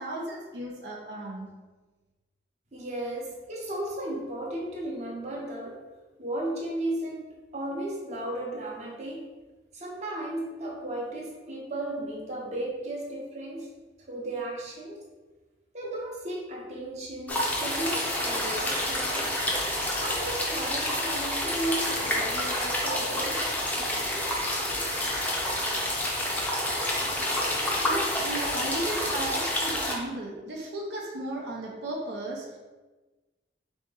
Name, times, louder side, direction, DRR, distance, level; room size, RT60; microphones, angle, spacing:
voice 1, 0.0-1.6 27.7-32.6, right 1 dB, 75° right, -2 dB, 0.7 m, -35 dB
voice 2, 2.7-5.8 6.2-9.2 9.7-13.7 14.1-15.0 15.7-19.3 20.0-23.4, right 1 dB, 40° right, -3 dB, 0.9 m, -35 dB
sound 1, 17.3-29.9, left 1 dB, 10° left, 0.6 m, -28 dB
3.7 x 2.9 x 3.8 m, 1.2 s
head